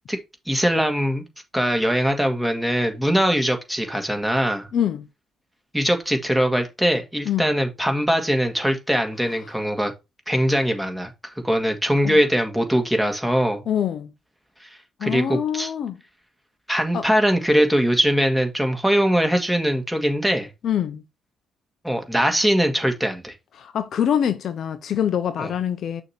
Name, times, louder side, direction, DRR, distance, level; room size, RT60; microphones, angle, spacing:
voice 1, 0.5-1.2 1.5-4.7 5.7-9.9 10.3-11.1 11.4-13.6 14.6-15.7 16.7-20.5 21.8-23.3 25.4-25.5, equal, 5° right, 1.8 m, -21 dB
voice 2, 4.7-5.1 7.2-7.5 12.0-12.2 13.7-14.1 15.0-16.0 16.9-17.1 20.6-21.0 23.6-26.0, left 9 dB, 60° left, 0.7 m, -24 dB
6.3 x 2.9 x 5.7 m
hypercardioid pair, 50°, 0 cm